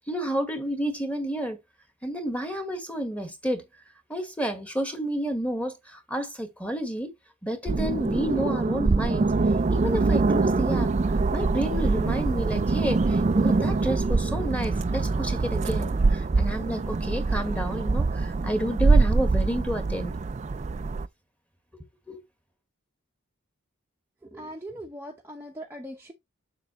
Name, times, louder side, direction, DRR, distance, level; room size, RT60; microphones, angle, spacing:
voice 1, 0.1-1.6 2.0-3.6 4.1-7.1 7.4-9.3 9.7-10.9 11.3-20.2 21.7-22.2, right 1 dB, 5° left, 1.5 m, -30 dB
sound 1, 7.7-21.1, right 3 dB, 30° right, 0.3 m, -24 dB
voice 2, 24.2-26.1, equal, 10° right, 0.8 m, -40 dB
7.4 x 6.0 x 3.0 m
head